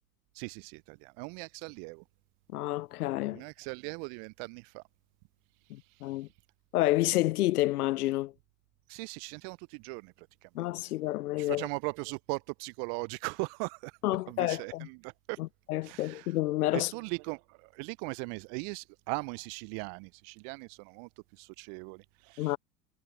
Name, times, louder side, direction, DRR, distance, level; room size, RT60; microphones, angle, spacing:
voice 1, 0.3-2.0 3.3-4.8 6.0-6.2 8.9-10.5 10.8-10.9 11.4-14.0 14.3-15.4 15.8-16.3 16.7-22.6, right 38 dB, 45° right, 0.8 m, -39 dB
voice 2, 2.5-3.4 5.7-6.3 6.7-8.3 10.5-11.7 14.0-14.9 15.7-16.9 22.4-22.6, left 17 dB, 65° left, 0.7 m, -29 dB
figure-of-eight pair, 80°, 49 cm